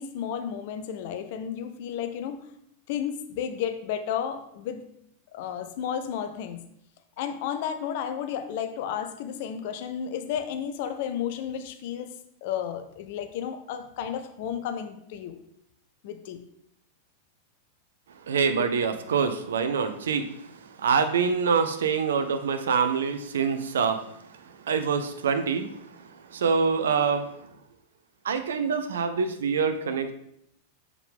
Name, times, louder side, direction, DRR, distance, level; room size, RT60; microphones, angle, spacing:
voice 1, 0.0-2.4 2.9-4.8 5.3-6.7 7.2-12.1 12.4-15.4 16.0-16.4, left 8 dB, 50° left, 8 dB, 0.6 m, -32 dB
voice 2, 18.3-20.3 20.8-24.0 24.7-25.7 26.3-27.2 28.2-30.1, right 6 dB, 65° right, 9 dB, 0.6 m, -25 dB
6.8 x 4.8 x 3.6 m, 0.74 s
figure-of-eight pair, 90°, 0 cm